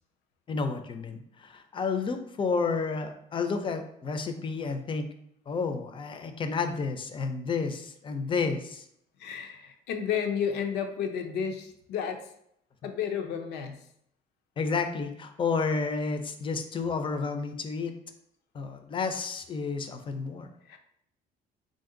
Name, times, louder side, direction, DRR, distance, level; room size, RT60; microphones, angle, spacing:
voice 1, 0.5-5.1 5.5-8.8 14.6-17.9 18.5-20.5, left 4 dB, 30° left, 7 dB, 0.5 m, -31 dB
voice 2, 9.2-12.3 12.8-13.8 20.7-20.8, left 7 dB, 85° left, 5 dB, 0.6 m, -32 dB
3.7 x 2.6 x 3.8 m, 0.71 s
cardioid pair, 110°, 17 cm